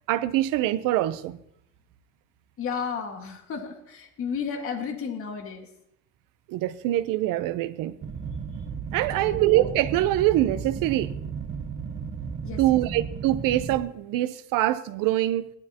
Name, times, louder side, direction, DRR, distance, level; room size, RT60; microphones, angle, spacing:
voice 1, 0.1-1.4 6.5-8.0 8.9-11.1 12.6-15.5, right 14 dB, 60° right, 0.8 m, -24 dB
voice 2, 2.6-5.7 9.1-9.4 12.4-12.8, left 6 dB, 35° left, 1.9 m, -33 dB
sound 1, 8.0-13.8, right 6 dB, 30° right, 1.0 m, -34 dB
17.0 x 12.0 x 2.9 m
cardioid pair, 150°, 38 cm